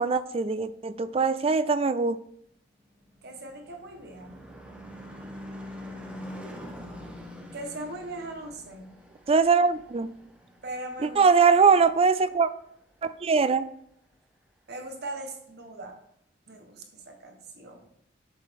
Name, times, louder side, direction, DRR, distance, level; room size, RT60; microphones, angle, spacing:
voice 1, 0.0-2.2 9.3-10.1 11.0-12.5 13.0-13.7, right 5 dB, 30° right, 14 dB, 0.3 m, -22 dB
Car passing by / Truck / Engine, 2.9-11.6, left 1 dB, 5° right, 1.2 m, -44 dB
voice 2, 3.2-4.4 7.5-8.9 10.6-11.3 11.5-11.6 14.7-16.0 16.5-17.9, right 2 dB, 55° right, 4 dB, 1.2 m, -39 dB
7.4 x 6.5 x 3.5 m, 0.72 s
head